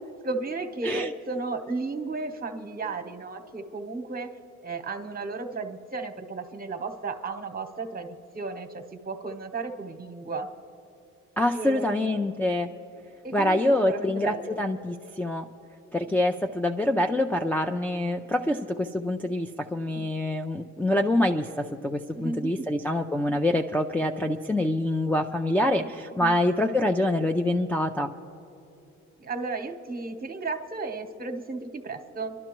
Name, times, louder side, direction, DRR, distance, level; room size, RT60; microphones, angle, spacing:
voice 1, 0.2-4.3 4.6-10.5 11.5-12.3 13.2-14.6 19.9-20.1 22.1-22.5 26.2-26.3 29.2-32.4, right 3 dB, 30° right, 6 dB, 1.0 m, -34 dB
voice 2, 11.4-12.7 13.3-15.5 15.9-28.1, left 1 dB, 5° left, 1 dB, 0.4 m, -26 dB
26.5 x 12.0 x 3.0 m, 2.7 s
cardioid pair, 90°, 30 cm